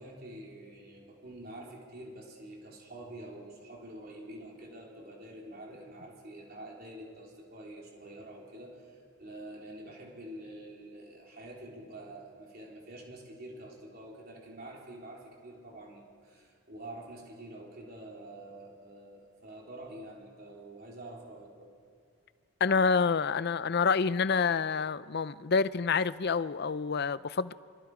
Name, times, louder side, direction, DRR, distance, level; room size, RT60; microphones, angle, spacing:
voice 1, 0.0-21.7, right 1 dB, 45° right, 3.8 m, -47 dB
voice 2, 22.6-27.5, left 5 dB, 50° left, 0.5 m, -27 dB
28.0 x 25.5 x 5.0 m
head